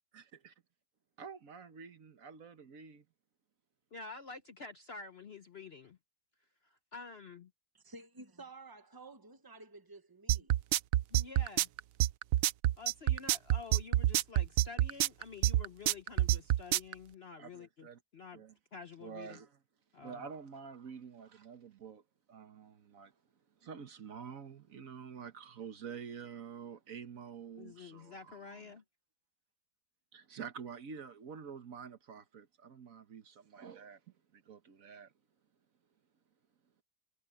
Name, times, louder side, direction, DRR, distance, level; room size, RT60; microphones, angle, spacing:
voice 1, 0.1-0.5 1.2-3.0 17.4-18.0 18.3-18.6 19.0-19.6 20.0-22.0 22.3-23.1 23.6-28.8 30.1-34.0 34.3-35.1, right 6 dB, 55° right, 1.4 m, -48 dB
voice 2, 3.9-6.0 6.6-7.5 11.1-11.7 12.8-17.9 18.1-18.4 18.7-19.4 19.9-20.2 27.6-28.8, left 4 dB, 50° left, 0.7 m, -49 dB
voice 3, 7.7-10.5, right 3 dB, 30° right, 0.3 m, -52 dB
sound 1, 10.3-16.9, right 14 dB, 75° right, 0.7 m, -27 dB
omnidirectional pair, 1.9 m